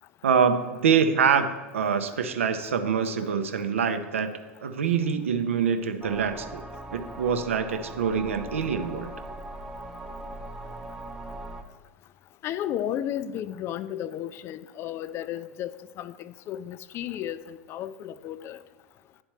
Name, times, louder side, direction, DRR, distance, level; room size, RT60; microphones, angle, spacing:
voice 1, 0.2-4.3 4.6-6.6 6.9-9.1, right 6 dB, 75° right, 0.6 m, -25 dB
sound 1, 6.0-11.6, right 1 dB, 5° right, 0.6 m, -40 dB
voice 2, 12.4-15.7 16.0-18.6, left 11 dB, 35° left, 0.3 m, -33 dB
10.5 x 4.3 x 3.0 m
figure-of-eight pair, 85°, 7 cm